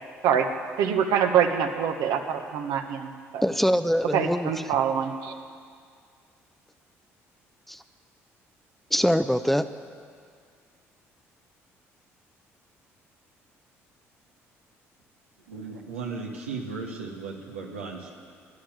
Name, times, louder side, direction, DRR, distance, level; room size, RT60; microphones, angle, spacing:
voice 1, 0.8-3.4 4.1-5.3, right 8 dB, 70° right, 5 dB, 1.3 m, -25 dB
voice 2, 3.4-4.5 7.7-7.8 8.9-9.7, equal, 5° left, 11 dB, 0.7 m, -23 dB
voice 3, 15.5-18.2, right 4 dB, 90° right, -1 dB, 1.7 m, -36 dB
14.0 x 10.5 x 9.3 m, 2.1 s
hypercardioid pair, 50°, 7 cm